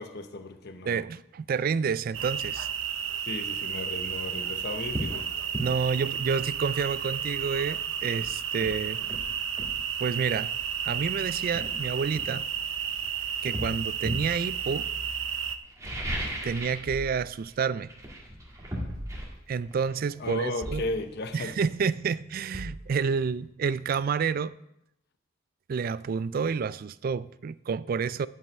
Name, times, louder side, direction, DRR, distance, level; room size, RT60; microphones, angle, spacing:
voice 1, 0.0-1.0 3.2-5.3 20.2-21.5, left 2 dB, 55° left, 0.8 m, -35 dB
voice 2, 0.9-2.7 5.6-9.0 10.0-10.5 10.8-12.5 13.4-14.9 16.4-17.9 19.5-20.8 21.3-24.5 25.7-28.3, right 6 dB, 50° right, 0.3 m, -29 dB
sound 1, 2.1-15.6, right 8 dB, 80° right, 0.7 m, -32 dB
sound 2, 4.2-4.3 4.9-5.2 5.5-5.7 7.6-7.7 8.1-9.8 10.9-11.0 11.5-12.9 13.5-14.3 15.6-16.9 17.2-17.5 17.8-21.4 21.7-21.8, equal, 15° right, 2.0 m, -37 dB
sound 3, 16.9-18.3 18.9-19.8 20.6-21.5 22.5-23.3, equal, 30° left, 1.9 m, -43 dB
10.5 x 5.5 x 7.9 m
head